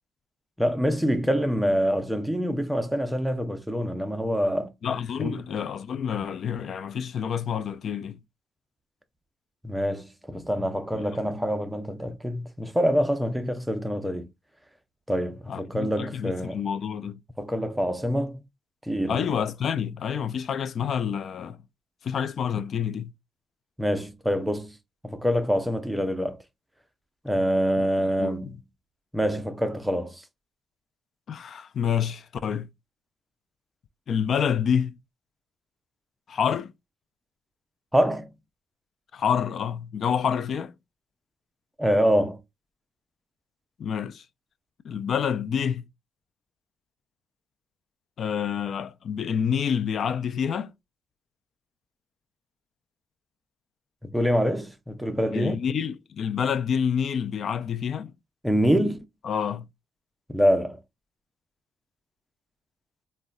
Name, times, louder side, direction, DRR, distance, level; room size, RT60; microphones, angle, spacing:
voice 1, 0.6-4.7 5.2-5.4 9.6-14.3 15.1-16.6 17.4-18.4 18.9-19.2 23.8-24.7 25.0-26.4 27.2-28.5 29.1-30.2 37.9-38.3 41.8-42.4 54.0-55.6 58.4-59.0 60.3-60.8, equal, 5° right, 0.6 m, -25 dB
voice 2, 4.8-8.2 10.6-10.7 10.9-11.1 15.5-17.2 19.1-21.6 22.0-23.1 27.8-28.6 31.3-32.7 34.1-34.9 36.3-36.7 39.1-40.7 43.8-44.2 44.8-45.8 48.2-50.7 55.3-58.1 59.2-59.7, left 7 dB, 55° left, 0.3 m, -28 dB
3.6 x 2.1 x 2.3 m
cardioid pair, 90°, 0 cm